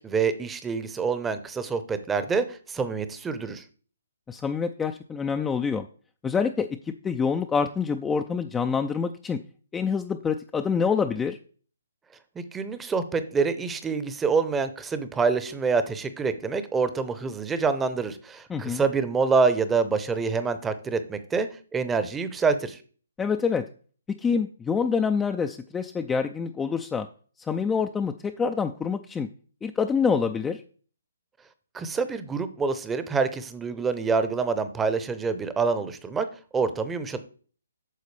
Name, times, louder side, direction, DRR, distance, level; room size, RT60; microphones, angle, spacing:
voice 1, 0.0-3.6 12.4-22.8 31.7-36.3 36.5-37.2, right 5 dB, 10° right, 11 dB, 0.7 m, -26 dB
voice 2, 4.3-5.9 6.2-6.7 7.0-9.4 9.7-11.4 18.5-18.8 23.2-23.7 24.1-27.1 27.5-29.3 29.6-30.6, left 6 dB, 10° left, 6 dB, 0.4 m, -26 dB
9.4 x 6.4 x 3.3 m, 0.42 s
hypercardioid pair, 145°, 0 cm